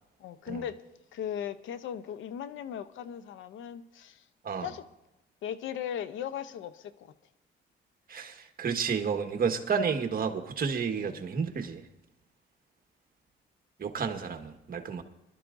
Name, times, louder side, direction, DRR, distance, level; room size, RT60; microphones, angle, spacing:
voice 1, 0.2-0.8 1.1-4.2 4.6-4.8 5.4-7.1 11.0-11.2, left 9 dB, 80° left, 0.8 m, -38 dB
voice 2, 8.1-11.8 13.8-15.0, right 6 dB, 50° right, 1.6 m, -31 dB
23.0 x 12.5 x 2.7 m
cardioid pair, 90°, 20 cm